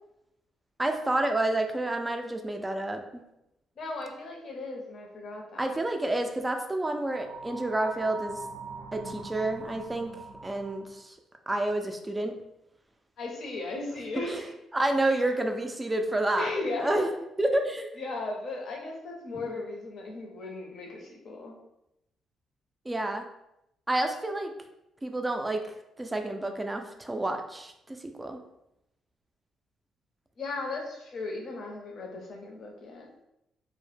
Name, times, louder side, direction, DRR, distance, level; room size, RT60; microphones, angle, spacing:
voice 1, 0.8-3.2 5.6-8.4 8.9-10.2 10.4-11.2 11.5-12.3 14.3-14.5 14.7-16.5 16.8-17.1 17.4-17.9 22.9-23.3 23.9-24.5 25.0-25.6 26.0-28.4, right 1 dB, 15° right, 4 dB, 0.3 m, -29 dB
voice 2, 3.8-5.7 13.2-14.5 15.1-15.2 16.3-17.1 18.0-21.6 30.4-33.1, left 3 dB, 60° left, 0 dB, 0.6 m, -36 dB
sound 1, 7.0-11.0, right 4 dB, 80° right, 0.5 m, -42 dB
2.0 x 2.0 x 3.2 m, 0.84 s
cardioid pair, 90°, 0 cm